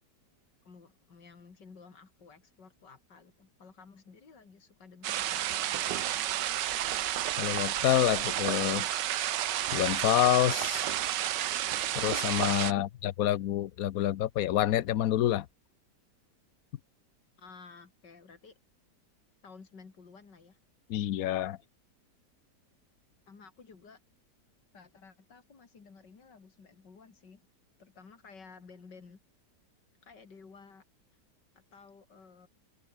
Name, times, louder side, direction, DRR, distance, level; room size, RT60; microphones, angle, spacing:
voice 1, 0.6-6.2 17.4-18.6 19.4-20.6 23.3-24.0 24.7-27.4 27.8-29.2 30.0-30.8 31.6-32.5, left 5 dB, 85° left, 3.5 m, -54 dB
sound 1, 5.0-12.7, right 12 dB, 90° right, 1.5 m, -31 dB
voice 2, 7.4-8.9 9.7-10.9 11.9-15.5 20.9-21.6, left 13 dB, 65° left, 1.1 m, -27 dB
omnidirectional pair, 1.8 m